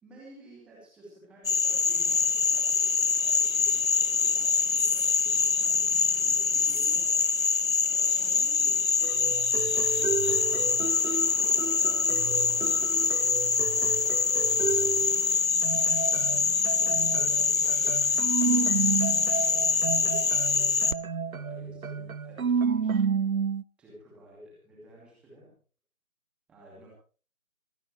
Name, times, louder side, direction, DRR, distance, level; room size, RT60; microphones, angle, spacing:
voice 1, 0.0-7.4 7.8-14.2 14.7-15.1 15.9-18.9 19.3-20.9 21.3-23.1 23.8-25.5 26.5-26.9, right 1 dB, ahead, -4 dB, 2.5 m, -53 dB
Frog, 1.4-20.9, left 5 dB, 65° left, 1.0 m, -25 dB
sound 1, 9.0-15.3 15.6-23.6, right 6 dB, 75° right, 0.7 m, -31 dB
sound 2, 9.7-15.4, right 2 dB, 45° right, 6.1 m, -48 dB
25.5 x 13.0 x 3.2 m, 0.39 s
figure-of-eight pair, 160°, 43 cm